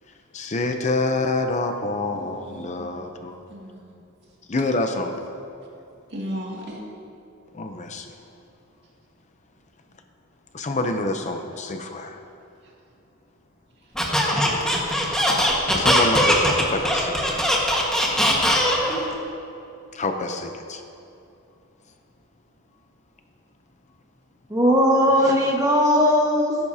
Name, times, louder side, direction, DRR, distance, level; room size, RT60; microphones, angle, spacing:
voice 1, 0.3-3.4 4.5-5.1 7.5-8.1 10.5-12.2 15.7-17.5 19.9-20.8, left 2 dB, 35° left, 5 dB, 0.6 m, -27 dB
voice 2, 2.1-3.2 3.5-4.0 6.1-6.8 12.6-12.7, equal, 50° right, -3 dB, 2.4 m, -37 dB
Squeak, 13.9-19.0, equal, 5° left, 1.5 m, -20 dB
voice 3, 24.5-26.6, equal, 15° right, -2 dB, 1.5 m, -18 dB
18.0 x 10.5 x 2.8 m, 2.7 s
head